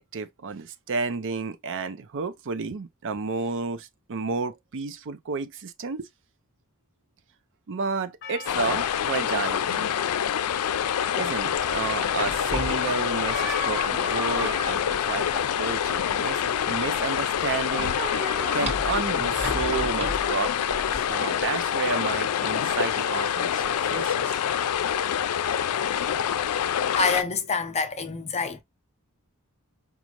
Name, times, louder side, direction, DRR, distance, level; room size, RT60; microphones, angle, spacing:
voice 1, 0.0-6.1 7.7-9.9 11.1-18.0 18.5-24.4, right 4 dB, 60° right, 0.5 m, -31 dB
Percussion, 8.2-13.2, left 5 dB, 55° left, 1.0 m, -49 dB
sound 1, 8.5-27.2, left 9 dB, 85° left, 0.4 m, -26 dB
sound 2, 11.6-21.1, equal, 30° right, 1.2 m, -35 dB
voice 2, 27.0-28.6, left 4 dB, 30° left, 0.6 m, -26 dB
5.1 x 2.4 x 2.8 m
head